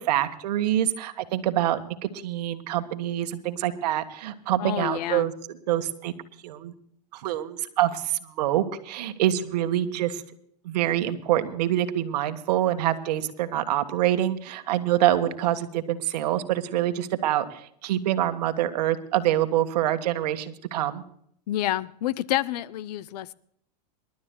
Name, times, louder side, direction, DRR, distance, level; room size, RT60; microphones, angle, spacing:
voice 1, 0.0-5.3 5.7-6.1 6.4-6.7 7.1-10.2 10.6-21.0, right 12 dB, 70° right, 10 dB, 1.5 m, -26 dB
voice 2, 4.6-5.3 15.1-15.3 21.5-23.3, left 14 dB, 70° left, 19 dB, 0.6 m, -29 dB
27.5 x 12.0 x 2.3 m, 0.68 s
hypercardioid pair, 120°, 21 cm